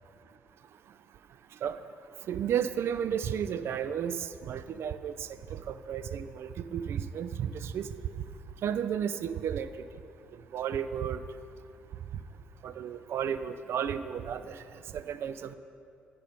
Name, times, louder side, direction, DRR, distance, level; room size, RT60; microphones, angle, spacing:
voice 1, 2.3-7.9 8.6-9.7 10.5-11.2 12.6-14.6 14.9-15.5, right 8 dB, 55° right, 12 dB, 0.3 m, -33 dB
10.0 x 5.2 x 5.2 m, 2.5 s
figure-of-eight pair, 40°, 5 cm